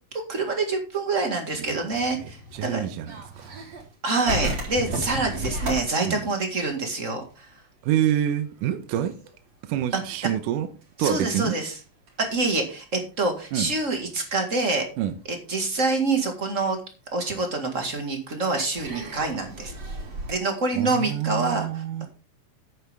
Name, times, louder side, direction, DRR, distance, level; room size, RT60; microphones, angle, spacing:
voice 1, 0.1-2.8 4.0-7.5 9.9-10.0 11.0-11.7 12.2-14.8 15.3-16.8 17.1-19.7 20.3-21.7, right 3 dB, 30° right, 1.5 m, -26 dB
voice 2, 1.5-1.9 2.2-3.7 5.3-5.5 6.1-6.3 7.8-9.1 9.6-10.7 11.0-11.6 13.5-13.7 15.0-15.1 20.7-22.1, right 10 dB, 75° right, 2.3 m, -27 dB
sound 1, 1.8-3.9 4.3-7.5 7.8-7.9 8.3-8.6 8.9-12.3 13.1-13.2 14.3-14.5 15.0-15.7 16.2-16.3 17.6-17.7 18.7-20.3, right 1 dB, 45° right, 5.5 m, -34 dB
10.5 x 8.7 x 3.6 m
omnidirectional pair, 4.1 m